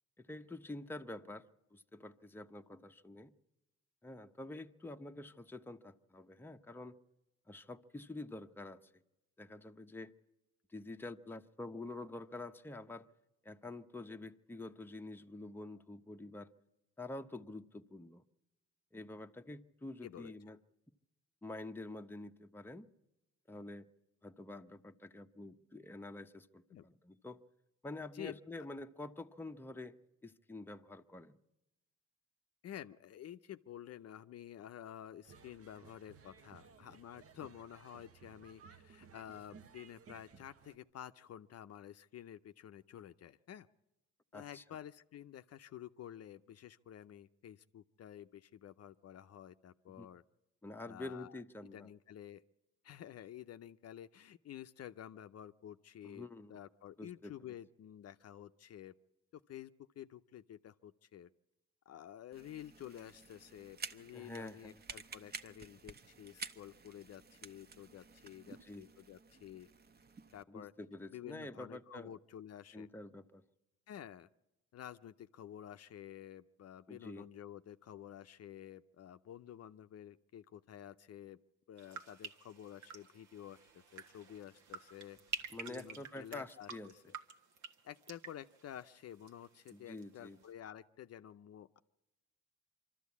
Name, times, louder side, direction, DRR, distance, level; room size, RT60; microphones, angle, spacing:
voice 1, 0.2-1.5 1.7-3.3 4.0-7.0 7.5-9.0 9.4-10.1 10.7-13.1 13.4-16.5 17.0-18.2 18.9-20.6 21.4-22.9 23.5-23.9 24.2-27.4 27.8-30.0 30.2-31.4 44.3-44.6 50.0-50.1 50.6-51.9 56.0-56.5 57.0-57.6 64.1-64.8 68.5-68.9 70.5-72.1 72.7-73.4 76.9-77.3 85.5-86.9 89.7-90.4, left 2 dB, 5° left, 0.8 m, -47 dB
voice 2, 20.0-20.3 26.7-26.8 28.1-28.7 32.6-43.7 44.3-50.2 50.9-52.4 52.8-58.9 59.3-61.3 61.9-69.7 70.3-70.7 71.1-72.9 73.9-74.3 74.7-81.4 81.7-85.2 85.7-87.2 87.8-91.8, left 10 dB, 55° left, 0.6 m, -51 dB
sound 1, 35.2-40.8, right 6 dB, 50° right, 1.1 m, -59 dB
sound 2, 62.3-70.4, right 4 dB, 35° right, 0.9 m, -51 dB
sound 3, 81.8-89.7 90.0-90.5, right 6 dB, 75° right, 1.6 m, -49 dB
24.0 x 13.0 x 8.4 m
cardioid pair, 90°, 30 cm